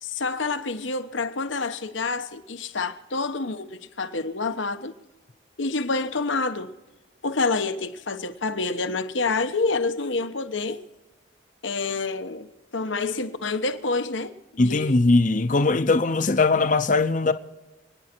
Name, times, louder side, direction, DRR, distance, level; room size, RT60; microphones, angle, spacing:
voice 1, 0.0-4.9 5.6-6.7 7.2-10.8 11.6-12.5 12.7-14.3 14.7-15.0, left 3 dB, 75° left, 1.1 m, -27 dB
voice 2, 14.6-17.3, left 3 dB, 40° left, 0.7 m, -20 dB
29.0 x 9.8 x 4.5 m
head